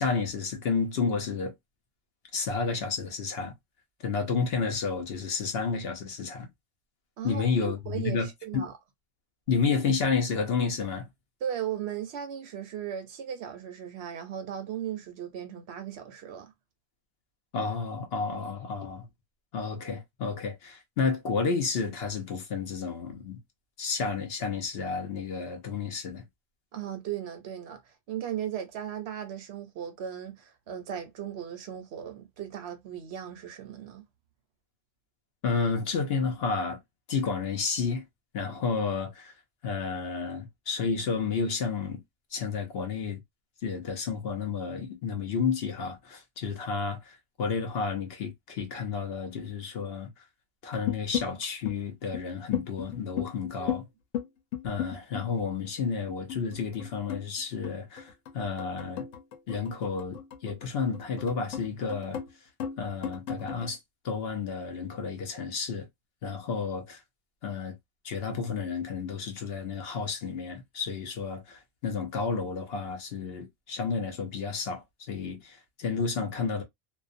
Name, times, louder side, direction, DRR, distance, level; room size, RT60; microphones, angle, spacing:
voice 1, 0.0-1.5 2.3-3.5 4.0-6.5 7.2-8.3 8.5-8.7 9.5-11.1 17.5-19.1 19.5-23.4 23.8-26.2 35.4-36.8 37.1-38.0 38.3-39.3 39.6-42.0 42.3-43.2 43.6-50.1 50.6-53.8 54.6-59.0 59.5-62.2 62.8-63.8 64.0-65.9 66.2-67.0 67.4-67.7 68.0-76.6, left 5 dB, 60° left, 0.8 m, -31 dB
voice 2, 7.2-8.7 11.4-16.5 26.7-34.0 53.6-53.7, right 9 dB, 65° right, 0.8 m, -37 dB
sound 1, 50.7-51.7 52.1-52.2 52.5-53.8 54.1-55.7 56.1-62.3 62.6-63.7, left 10 dB, 90° left, 1.1 m, -35 dB
2.5 x 2.1 x 2.5 m
omnidirectional pair, 1.3 m